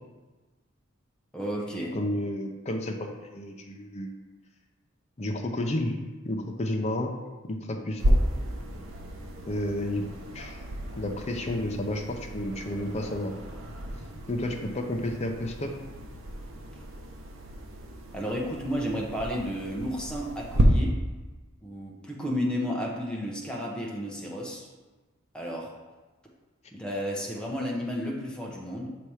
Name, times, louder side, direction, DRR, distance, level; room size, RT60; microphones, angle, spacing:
voice 1, 1.3-2.0 18.1-21.0 21.6-24.7 25.3-25.7 26.7-29.0, equal, 5° left, -3 dB, 0.8 m, -32 dB
voice 2, 1.9-4.1 5.2-5.9 6.2-7.1 7.5-8.2 9.5-10.1 10.3-10.6 11.0-13.3 14.3-15.7, left 1 dB, 30° left, 3 dB, 0.6 m, -31 dB
sound 1, 8.0-20.6, equal, 80° right, 0.7 m, -33 dB
6.7 x 3.0 x 4.8 m, 1.2 s
head